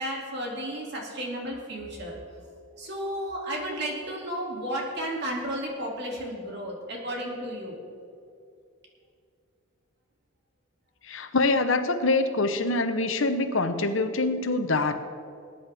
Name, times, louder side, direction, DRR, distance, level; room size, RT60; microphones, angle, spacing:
voice 1, 0.0-2.1 2.8-7.8, equal, 55° right, -2 dB, 2.6 m, -33 dB
voice 2, 11.0-15.0, left 3 dB, 65° left, 8 dB, 0.9 m, -25 dB
20.5 x 10.0 x 3.5 m, 2.4 s
head